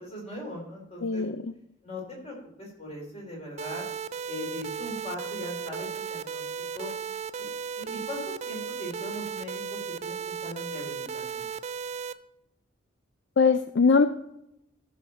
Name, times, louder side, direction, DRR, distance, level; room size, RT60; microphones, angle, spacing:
voice 1, 0.0-1.2 1.8-3.9 4.3-6.4 6.7-6.9 7.4-7.5 7.8-11.4, left 1 dB, 30° left, -1 dB, 3.6 m, -39 dB
voice 2, 1.0-1.5 13.4-14.1, left 5 dB, 55° left, 10 dB, 0.4 m, -21 dB
sound 1, 3.6-12.1, right 7 dB, 35° right, 0.3 m, -35 dB
14.0 x 6.3 x 4.2 m, 0.84 s
head